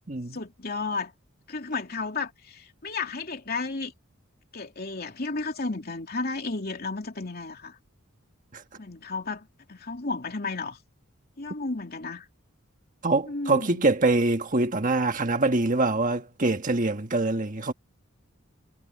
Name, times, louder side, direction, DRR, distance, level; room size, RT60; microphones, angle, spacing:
voice 1, 0.3-1.1 1.5-3.9 4.5-7.8 8.8-10.8 11.4-12.3 13.2-13.9, left 3 dB, 45° left, 3.0 m, -33 dB
voice 2, 13.0-17.7, right 2 dB, 40° right, 1.5 m, -24 dB
head